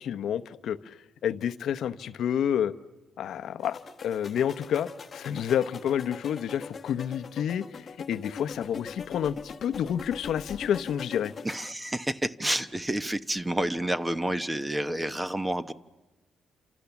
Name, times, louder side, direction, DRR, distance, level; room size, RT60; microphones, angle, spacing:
voice 1, 0.0-2.7 3.2-11.3, left 9 dB, 70° left, 12 dB, 0.9 m, -29 dB
sound 1, 3.6-11.6, left 5 dB, 35° left, 1.1 m, -42 dB
voice 2, 11.4-15.7, right 1 dB, 10° right, 12 dB, 1.0 m, -29 dB
28.5 x 27.5 x 7.1 m, 1.1 s
cardioid pair, 125°, 0 cm